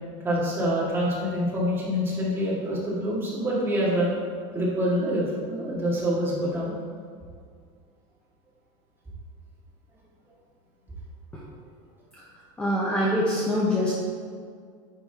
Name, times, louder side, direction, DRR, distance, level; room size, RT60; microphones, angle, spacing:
voice 1, 0.2-4.1 4.5-6.8, equal, 15° right, -7 dB, 2.0 m, -26 dB
voice 2, 12.6-14.0, left 1 dB, 5° left, -6 dB, 0.8 m, -24 dB
9.8 x 3.7 x 4.6 m, 2.1 s
cardioid pair, 165°, 17 cm